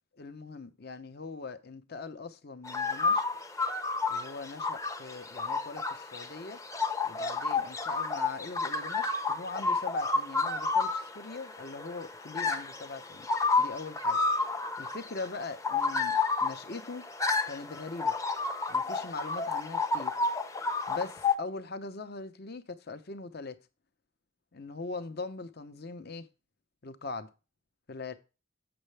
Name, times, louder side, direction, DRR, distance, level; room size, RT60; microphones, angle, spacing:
voice 1, 0.2-3.2 4.1-6.6 7.0-13.3 13.6-14.2 14.8-17.0 17.5-18.1 18.7-20.1 20.9-23.6 24.5-26.3 26.8-27.3 27.9-28.1, left 3 dB, 50° left, 0.8 m, -41 dB
sound 1, 2.6-21.4, left 4 dB, 15° left, 0.7 m, -31 dB
8.0 x 6.4 x 3.3 m
head